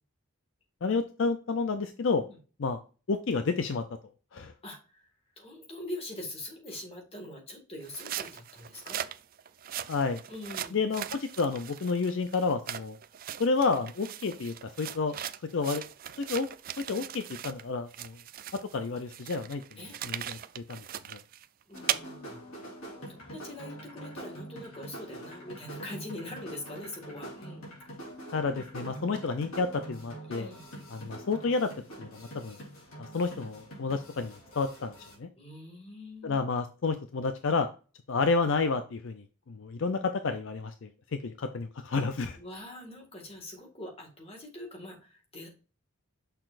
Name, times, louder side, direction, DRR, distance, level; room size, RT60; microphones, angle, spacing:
voice 1, 0.8-2.2 2.6-2.8 3.1-3.8 4.3-4.5 9.9-10.2 10.7-13.0 13.4-15.2 15.5-15.8 16.2-16.5 16.9-18.2 18.5-20.8 21.1-21.2 28.3-30.5 30.9-31.7 32.0-32.6 33.0-34.9 35.2-35.3 36.2-37.7 38.1-42.4, left 4 dB, 60° left, 9 dB, 0.5 m, -30 dB
voice 2, 4.6-9.1 10.3-10.8 19.8-20.0 21.7-22.4 22.9-27.7 30.2-30.7 35.4-36.4 42.4-45.5, left 1 dB, 25° left, 1 dB, 1.9 m, -43 dB
sound 1, 7.8-17.6 17.9-22.0, right 11 dB, 40° right, 0.3 m, -39 dB
sound 2, 21.7-35.2, right 1 dB, 75° left, 3.2 m, -45 dB
6.6 x 5.9 x 2.5 m, 0.36 s
head